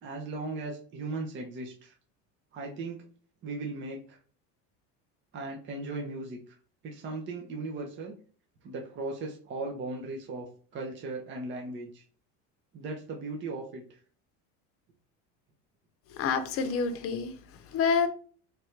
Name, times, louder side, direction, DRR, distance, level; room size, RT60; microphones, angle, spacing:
voice 1, 0.0-1.9 2.5-3.1 3.4-4.2 5.3-6.6 6.8-8.1 8.6-10.5 10.7-12.0 12.7-14.0, right 3 dB, 35° right, 1 dB, 0.7 m, -37 dB
voice 2, 16.1-18.1, left 5 dB, 40° left, 8 dB, 0.7 m, -28 dB
3.3 x 2.6 x 4.4 m, 0.42 s
cardioid pair, 140°, 34 cm